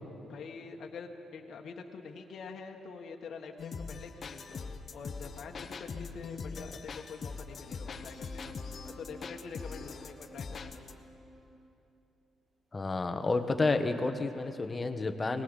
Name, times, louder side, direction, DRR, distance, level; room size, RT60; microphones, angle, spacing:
voice 1, 0.3-8.6 9.0-10.9, left 5 dB, 60° left, 2 dB, 1.5 m, -46 dB
sound 1, 3.6-10.9, left 5 dB, 45° left, 1.1 m, -42 dB
sound 2, 7.9-11.7 13.4-14.1, equal, 25° right, 2.2 m, -53 dB
voice 2, 12.7-15.4, left 3 dB, 25° left, 7 dB, 1.4 m, -30 dB
20.0 x 17.5 x 8.2 m, 2.9 s
cardioid pair, 90°, 0 cm